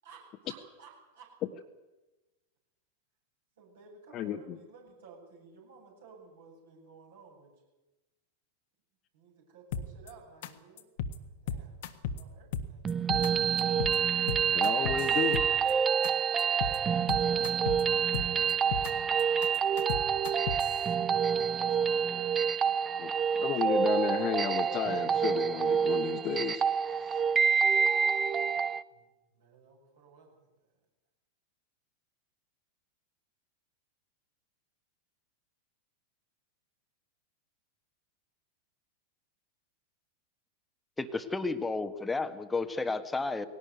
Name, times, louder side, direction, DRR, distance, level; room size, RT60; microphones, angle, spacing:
voice 1, 0.0-1.3 3.6-7.5 9.1-12.9 17.0-20.4 21.3-22.2 28.9-30.5, right 4 dB, 60° right, 0 dB, 7.7 m, -56 dB
voice 2, 4.1-4.6 14.5-15.4 23.0-27.2, left 9 dB, 35° left, 2 dB, 1.4 m, -33 dB
sound 1, 9.7-10.1 10.4-10.5 10.8-11.2 11.5-12.2 12.5-13.3 13.6-14.0 14.3-15.7 16.0-16.1 16.4-16.8 17.1-17.8 18.1-18.9 19.2-20.7, left 6 dB, 55° left, 1.6 m, -34 dB
sound 2, 12.9-28.8, right 7 dB, 20° right, 0.7 m, -27 dB
voice 3, 41.0-43.5, left 3 dB, 10° left, 10 dB, 1.5 m, -32 dB
20.0 x 18.0 x 9.4 m, 1.1 s
figure-of-eight pair, 90°, 0 cm